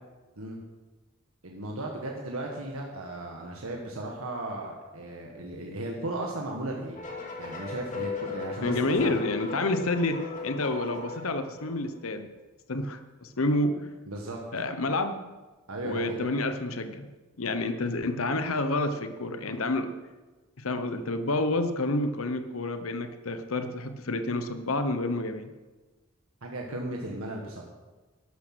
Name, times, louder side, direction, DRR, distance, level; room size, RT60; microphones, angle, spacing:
voice 1, 1.4-7.0 7.4-9.1 14.1-14.4 15.7-16.3 26.4-27.6, right 1 dB, 80° right, 0 dB, 1.7 m, -36 dB
sound 1, 7.0-12.0, left 4 dB, 35° left, 2.4 m, -38 dB
voice 2, 8.6-12.3 12.7-13.9 14.5-15.2 15.8-17.1 17.4-19.9 20.6-25.5, left 2 dB, 80° left, 9 dB, 0.9 m, -29 dB
12.5 x 11.5 x 6.1 m, 1.3 s
head